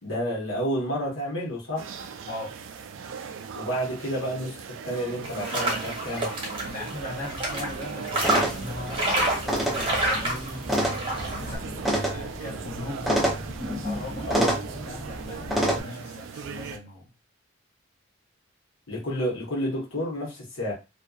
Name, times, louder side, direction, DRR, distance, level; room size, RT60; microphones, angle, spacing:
voice 1, 0.0-2.0 3.5-6.3 14.3-14.5 18.9-20.7, equal, 85° left, -3 dB, 1.0 m, -30 dB
sound 1, 1.8-16.8, right 6 dB, 70° right, 0.3 m, -39 dB
voice 2, 2.3-2.6 6.6-13.4 13.8-14.5 14.8-17.1, left 2 dB, 40° left, -4 dB, 0.7 m, -39 dB
sound 2, 5.2-11.6, right 1 dB, 25° right, 0.7 m, -29 dB
sound 3, 8.2-15.8, right 1 dB, ahead, 0.4 m, -29 dB
2.5 x 2.2 x 2.3 m, 0.27 s
head